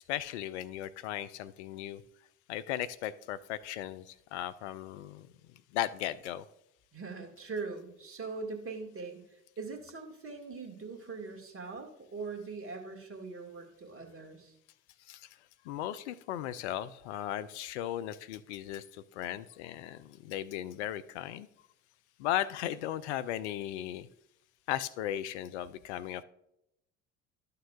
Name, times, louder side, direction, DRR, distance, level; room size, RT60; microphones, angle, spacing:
voice 1, 0.1-2.0 2.5-6.4 15.1-15.3 15.6-21.5 22.2-24.1 24.7-26.2, left 12 dB, 70° left, 15 dB, 0.5 m, -37 dB
voice 2, 6.9-14.5, right 4 dB, 35° right, 4 dB, 2.0 m, -42 dB
12.5 x 6.6 x 2.4 m, 0.80 s
figure-of-eight pair, 55°, 36 cm